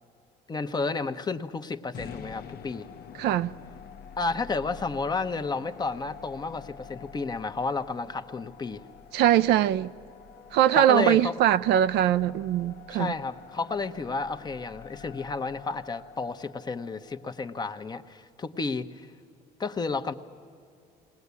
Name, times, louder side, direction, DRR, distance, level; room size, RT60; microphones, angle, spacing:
voice 1, 0.5-2.9 4.2-8.8 10.8-11.3 12.9-19.1 19.6-20.1, left 4 dB, 25° left, 0.9 m, -31 dB
sound 1, 1.9-18.1, left 7 dB, 70° left, 0.9 m, -47 dB
voice 2, 3.2-3.5 9.1-9.9 10.5-13.1, right 11 dB, 80° right, 0.5 m, -22 dB
20.5 x 19.0 x 8.3 m
cardioid pair, 110°, 17 cm